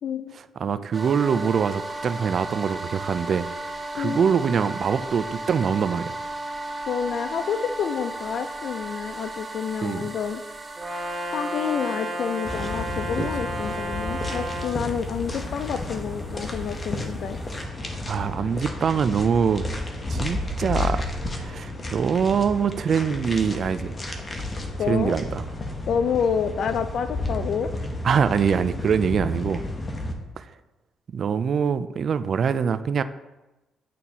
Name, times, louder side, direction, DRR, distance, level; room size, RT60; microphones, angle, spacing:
voice 1, 0.0-0.4 4.0-4.2 6.9-10.4 11.3-17.4 24.8-25.1 25.9-27.7, left 7 dB, 65° left, 11 dB, 0.4 m, -28 dB
voice 2, 0.6-3.5 3.9-6.2 9.8-10.0 13.2-13.3 18.1-19.7 20.1-21.0 21.3-23.9 24.9-25.4 28.0-29.6 30.4-30.5 31.1-33.0, right 6 dB, 55° right, 13 dB, 0.3 m, -24 dB
sound 1, 0.9-17.6, right 2 dB, 25° right, 0.9 m, -37 dB
Brass instrument, 10.8-14.8, equal, 5° right, 2.0 m, -32 dB
sound 2, 12.4-30.1, left 2 dB, 30° left, 0.9 m, -32 dB
9.0 x 4.1 x 2.8 m, 1.1 s
cardioid pair, 90°, 0 cm